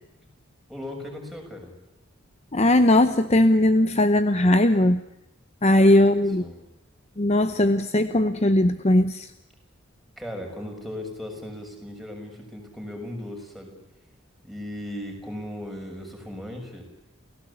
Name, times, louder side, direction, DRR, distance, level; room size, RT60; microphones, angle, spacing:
voice 1, 0.7-1.7 5.7-6.1 6.4-6.6 10.2-13.7 14.4-16.8, left 1 dB, ahead, 1 dB, 6.5 m, -37 dB
voice 2, 2.5-5.0 5.6-6.4 7.2-9.3, left 1 dB, 30° left, 10 dB, 0.8 m, -19 dB
29.5 x 17.5 x 8.6 m, 0.91 s
head